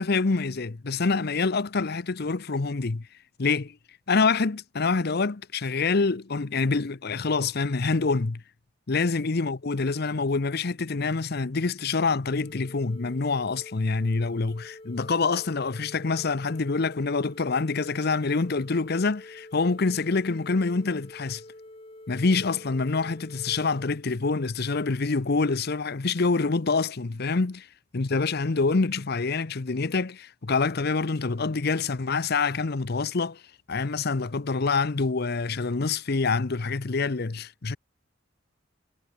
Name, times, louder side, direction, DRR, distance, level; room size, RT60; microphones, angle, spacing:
voice 1, 0.0-3.1 3.4-3.7 4.1-8.4 8.9-21.4 22.1-27.6 27.9-33.4 33.7-37.8, left 4 dB, 55° left, 0.8 m, -26 dB
sound 1, 12.4-23.8, left 1 dB, 30° left, 2.3 m, -47 dB
head